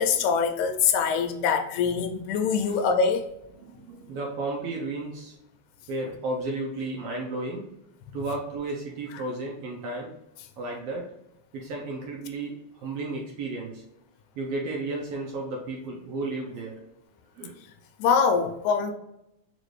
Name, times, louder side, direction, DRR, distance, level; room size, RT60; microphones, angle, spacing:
voice 1, 0.0-3.3 18.0-18.9, left 6 dB, 80° left, 1.8 m, -24 dB
voice 2, 3.6-5.4 5.9-7.7 8.1-10.1 10.6-11.1 11.5-13.8 14.4-16.8 17.4-17.5, right 2 dB, 70° right, 1.5 m, -33 dB
5.1 x 2.6 x 3.1 m
omnidirectional pair, 3.4 m